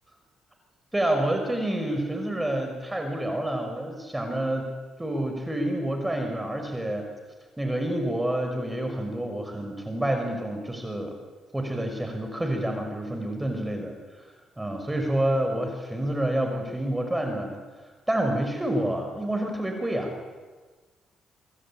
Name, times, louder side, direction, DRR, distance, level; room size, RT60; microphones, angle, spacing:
voice 1, 0.9-4.7 5.0-7.1 7.6-11.2 11.5-14.0 14.6-17.6 18.1-20.2, right 1 dB, 10° right, 4 dB, 5.7 m, -28 dB
26.0 x 21.5 x 8.9 m, 1.3 s
supercardioid pair, 65°, 0 cm